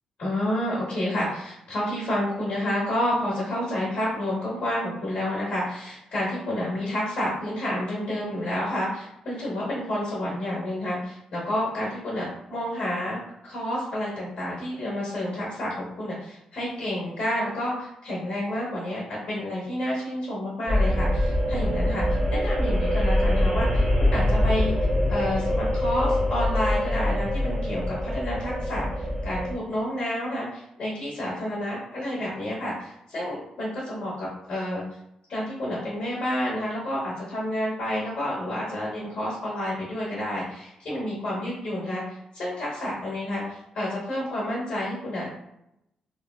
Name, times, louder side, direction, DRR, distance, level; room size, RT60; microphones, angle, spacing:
voice 1, 0.2-13.2 13.4-22.1 22.3-24.7 25.1-34.8 35.3-45.3, left 1 dB, 65° left, -6 dB, 1.1 m, -29 dB
sound 1, 20.7-29.5, left 1 dB, 10° right, 0.7 m, -24 dB
3.0 x 2.2 x 2.3 m, 0.82 s
cardioid pair, 115°, 2 cm